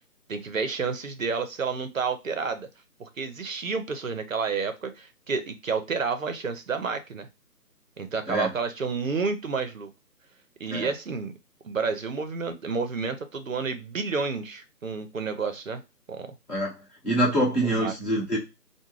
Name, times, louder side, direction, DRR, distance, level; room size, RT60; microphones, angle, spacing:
voice 1, 0.3-2.7 3.0-7.3 8.0-9.9 10.6-11.3 11.6-15.8 16.1-16.4 17.6-17.9, right 5 dB, 55° right, 9 dB, 0.6 m, -30 dB
voice 2, 17.0-18.4, right 1 dB, 25° left, -8 dB, 1.4 m, -25 dB
3.5 x 2.2 x 3.1 m, 0.25 s
figure-of-eight pair, 165°, 49 cm